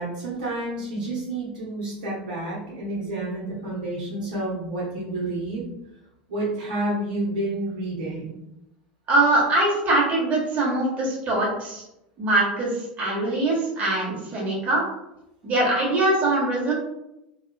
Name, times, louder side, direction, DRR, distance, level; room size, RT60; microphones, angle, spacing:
voice 1, 0.0-5.6 6.3-8.4, right 2 dB, 65° right, -6 dB, 1.0 m, -29 dB
voice 2, 9.1-11.8 12.2-14.8 15.4-16.7, right 2 dB, 30° right, -4 dB, 1.2 m, -22 dB
3.5 x 2.4 x 2.2 m, 0.87 s
figure-of-eight pair, 80°, 5 cm